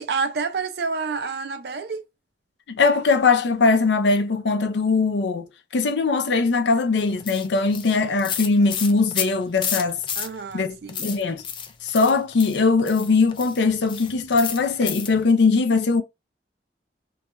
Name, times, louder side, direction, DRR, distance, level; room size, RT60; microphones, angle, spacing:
voice 1, 0.0-2.1 10.2-11.1, right 4 dB, 65° right, 0.4 m, -28 dB
voice 2, 2.7-10.0 10.5-11.4 11.8-16.0, left 4 dB, 85° left, 0.5 m, -21 dB
sound 1, 7.0-10.6 10.9-15.3, left 8 dB, 30° left, 0.3 m, -31 dB
2.3 x 2.2 x 2.9 m
head